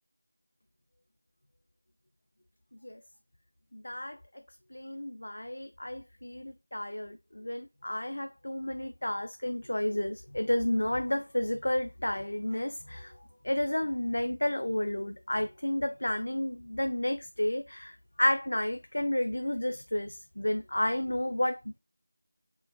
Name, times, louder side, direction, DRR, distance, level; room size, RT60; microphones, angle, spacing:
voice 1, 3.7-4.2 4.7-13.1 13.4-21.8, left 1 dB, 65° left, 0.4 m, -31 dB
5.4 x 2.4 x 2.2 m
figure-of-eight pair, 175°, 0 cm